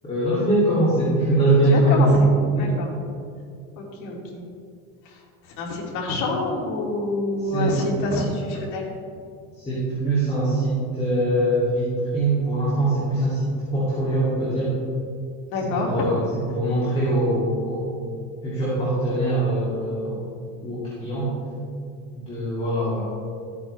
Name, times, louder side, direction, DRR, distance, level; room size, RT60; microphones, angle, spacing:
voice 1, 0.1-2.1 2.5-2.7 7.4-7.8 9.5-13.5 13.7-14.7 15.6-17.8 18.4-20.2 20.6-21.3 22.1-23.0, right 1 dB, 20° left, -8 dB, 2.7 m, -22 dB
voice 2, 1.7-2.1 2.5-2.9 3.8-4.4 5.6-8.9 15.5-16.0, left 2 dB, 65° left, -2 dB, 2.7 m, -27 dB
13.5 x 8.5 x 3.3 m, 2.3 s
cardioid pair, 140°, 33 cm